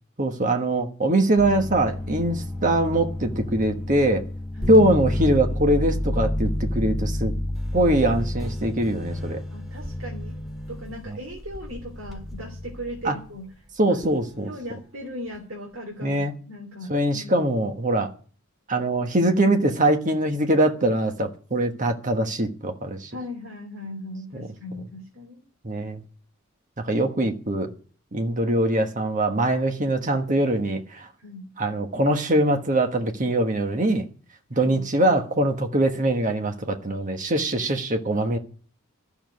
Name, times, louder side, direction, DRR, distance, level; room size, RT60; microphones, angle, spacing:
voice 1, 0.2-4.2 4.7-7.3 7.7-9.4 11.1-11.2 13.0-13.2 13.8-14.5 16.0-16.3 16.9-18.1 18.7-23.1 25.6-26.0 26.8-27.7 28.1-31.1 31.6-34.1 34.5-38.4, right 1 dB, 35° right, 1.3 m, -22 dB
sound 1, 1.4-13.1 14.0-14.4, left 1 dB, ahead, 1.8 m, -30 dB
voice 2, 4.5-4.9 9.5-10.4 10.7-13.5 13.9-14.0 14.5-17.3 23.1-25.4 31.2-31.5 34.5-34.8, left 1 dB, 65° right, 3.1 m, -38 dB
13.5 x 7.1 x 9.4 m
head